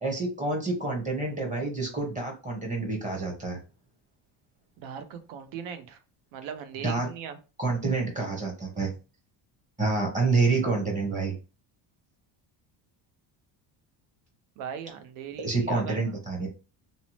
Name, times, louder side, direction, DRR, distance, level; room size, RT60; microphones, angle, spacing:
voice 1, 0.0-3.6 6.8-7.1 7.6-8.9 9.8-11.3 15.4-16.5, right 3 dB, 15° right, 1 dB, 0.7 m, -28 dB
voice 2, 4.8-6.0 6.3-7.4 14.6-16.2, right 8 dB, 80° right, 9 dB, 0.7 m, -39 dB
2.7 x 2.1 x 2.9 m, 0.32 s
cardioid pair, 160°, 48 cm